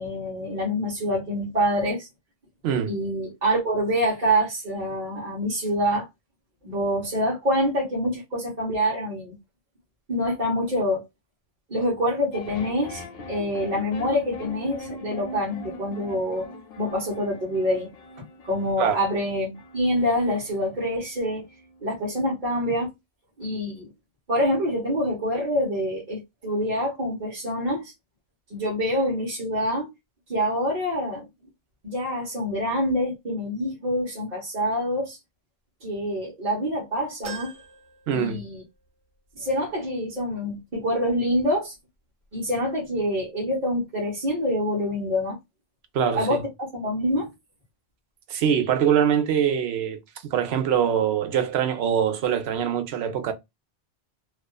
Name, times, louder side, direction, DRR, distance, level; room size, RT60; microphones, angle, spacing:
voice 1, 0.0-2.1 2.9-6.1 6.6-9.4 10.1-11.0 11.7-16.5 16.8-17.9 18.4-21.4 21.8-22.9 23.4-23.9 24.3-27.9 28.5-29.9 30.3-31.3 31.8-35.2 35.8-37.5 38.1-38.6 39.3-41.7 42.3-45.4 46.1-47.3, equal, 50° right, 1.1 m, -26 dB
voice 2, 2.6-2.9 18.8-19.0 38.1-38.5 45.9-46.4 48.3-50.0 50.3-53.3, right 8 dB, 90° right, 0.9 m, -23 dB
sound 1, 12.3-22.6, left 2 dB, 70° left, 0.8 m, -42 dB
sound 2, 37.2-38.9 39.3-39.4 40.6-40.7, right 6 dB, 70° right, 1.2 m, -42 dB
2.4 x 2.4 x 2.2 m
omnidirectional pair, 1.0 m